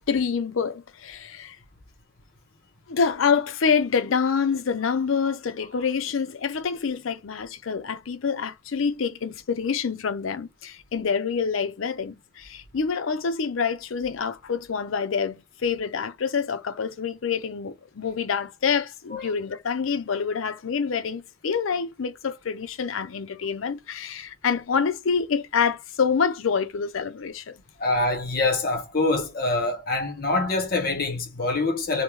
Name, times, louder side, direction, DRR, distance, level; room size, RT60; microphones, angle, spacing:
voice 1, 0.1-1.6 2.9-27.5, left 6 dB, 85° left, 0.5 m, -26 dB
voice 2, 27.8-32.0, left 2 dB, 45° left, 0.9 m, -25 dB
3.1 x 2.1 x 3.5 m
head